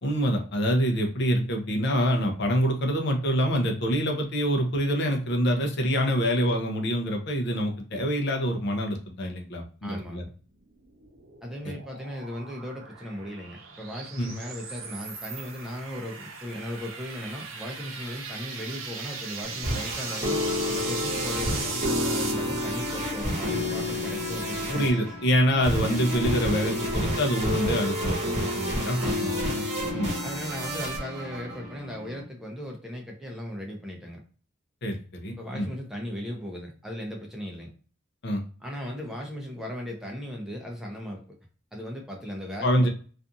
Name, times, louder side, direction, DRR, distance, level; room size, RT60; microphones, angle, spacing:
voice 1, 0.0-10.2 11.6-11.7 14.2-14.3 24.7-29.6 29.9-30.1 34.8-35.7 38.2-38.4 42.6-42.9, equal, 60° left, 3 dB, 0.6 m, -26 dB
voice 2, 9.8-10.3 11.4-20.4 20.7-24.9 29.0-29.3 30.2-34.2 35.4-37.7 38.6-41.2 41.7-42.9, equal, 5° right, 0 dB, 0.5 m, -37 dB
sound 1, 10.6-22.3, right 5 dB, 80° right, 0.7 m, -38 dB
sound 2, 19.4-32.2, left 1 dB, 35° right, 0.9 m, -30 dB
2.5 x 2.4 x 2.6 m, 0.40 s
head